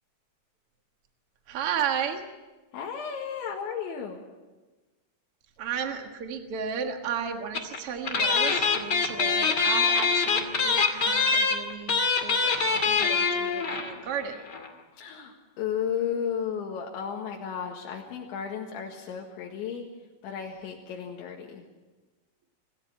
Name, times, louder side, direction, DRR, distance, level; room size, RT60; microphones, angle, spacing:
voice 1, 1.5-2.2 5.6-14.4, right 7 dB, 85° right, 5 dB, 1.2 m, -34 dB
voice 2, 2.7-4.2 14.9-19.8 20.2-21.7, left 7 dB, 80° left, -1 dB, 4.0 m, -34 dB
sound 1, 7.5-7.8 8.0-13.9 14.2-14.3 14.5-14.7, left 5 dB, 35° left, 1.8 m, -24 dB
27.0 x 15.5 x 8.6 m, 1.2 s
omnidirectional pair, 5.4 m